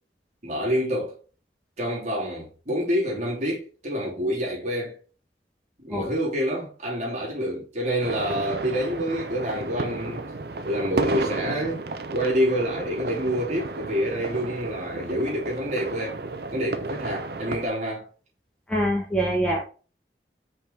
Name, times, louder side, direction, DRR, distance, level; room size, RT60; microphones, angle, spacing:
voice 1, 0.4-1.1 1.8-5.0 5.8-10.3 10.6-11.8 12.1-16.2 16.5-18.1, equal, 40° right, 2.9 m, -27 dB
sound 1, 8.0-17.7, right 3 dB, 60° right, 0.7 m, -32 dB
voice 2, 18.7-19.6, right 1 dB, 5° left, 1.2 m, -24 dB
5.4 x 4.9 x 3.7 m
head